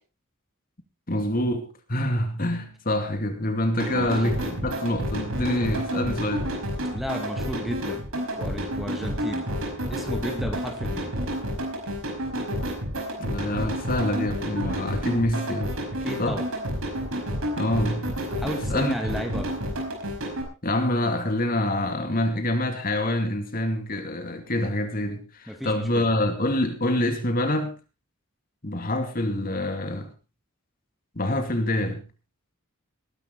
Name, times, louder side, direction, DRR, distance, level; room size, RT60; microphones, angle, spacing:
voice 1, 1.1-6.5 13.2-15.7 16.2-16.4 17.6-18.2 18.7-19.0 20.6-27.8 28.6-30.1 31.2-32.0, left 1 dB, 40° left, 2.5 m, -26 dB
sound 1, 3.8-20.4, equal, 75° right, 5.2 m, -30 dB
voice 2, 6.9-8.1 8.4-9.5 9.9-11.1 16.0-16.5 18.4-19.5 25.5-26.1, equal, ahead, 2.3 m, -33 dB
19.5 x 11.5 x 4.0 m
head